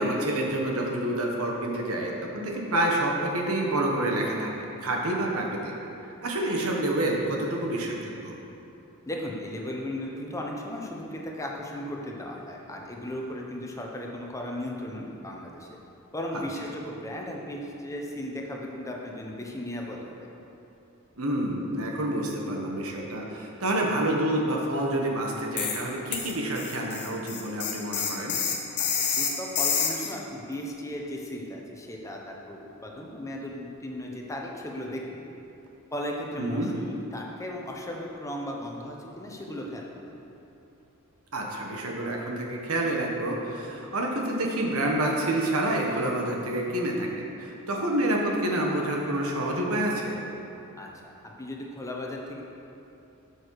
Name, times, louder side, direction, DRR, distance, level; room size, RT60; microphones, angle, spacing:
voice 1, 0.0-4.5 4.8-5.7 6.2-8.3 16.3-16.4 21.2-28.4 36.4-36.7 41.3-50.2, right 1 dB, 75° right, 0 dB, 1.5 m, -28 dB
voice 2, 9.0-15.7 16.1-20.0 28.8-28.9 29.1-35.3 35.9-40.1 50.8-51.1 51.4-52.4, left 1 dB, 15° left, -1 dB, 1.0 m, -36 dB
sound 1, 25.6-25.8 26.1-30.1, left 7 dB, 55° left, 1.3 m, -28 dB
12.5 x 6.4 x 4.8 m, 2.9 s
head